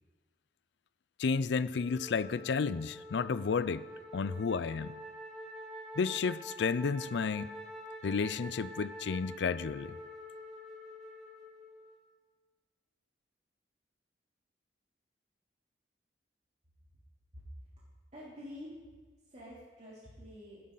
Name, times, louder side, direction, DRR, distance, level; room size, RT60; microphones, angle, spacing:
voice 1, 1.2-3.9 4.1-5.0 6.0-7.6 8.0-10.0, left 5 dB, 80° left, 0.4 m, -32 dB
Wind instrument woodwind instrument, 1.7-12.1, equal, 5° left, 2.1 m, -47 dB
voice 2, 18.1-18.9 19.3-20.6, left 1 dB, 40° right, 3.2 m, -48 dB
17.5 x 11.0 x 4.0 m
head